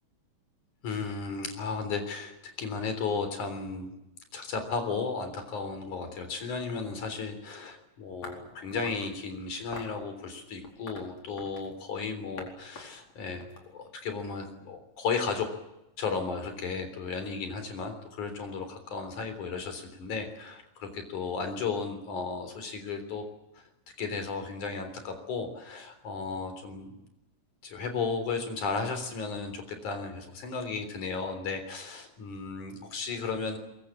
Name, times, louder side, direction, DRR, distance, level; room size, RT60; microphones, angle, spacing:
voice 1, 0.8-3.9 4.3-15.5 16.0-23.2 23.5-23.6 24.0-27.0 27.6-33.6, left 4 dB, 85° left, 7 dB, 5.1 m, -34 dB
sound 1, 8.2-9.1 9.7-10.0 10.6-11.8 12.4-12.5 12.8-14.2, left 2 dB, 60° left, 5.7 m, -44 dB
23.0 x 22.5 x 8.7 m, 0.91 s
omnidirectional pair, 3.4 m